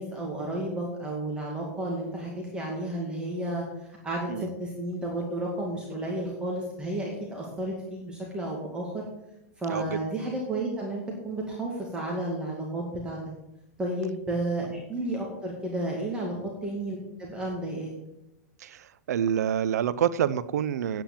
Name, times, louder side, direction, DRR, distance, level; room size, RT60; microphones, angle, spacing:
voice 1, 0.0-3.6 4.0-9.0 9.6-13.2 13.8-16.3 16.6-17.9, right 1 dB, 10° right, -2 dB, 2.1 m, -32 dB
voice 2, 9.7-10.0 16.4-16.5 18.6-21.0, right 9 dB, 80° right, 16 dB, 0.5 m, -27 dB
9.1 x 9.0 x 7.2 m, 0.89 s
hypercardioid pair, 145°, 9 cm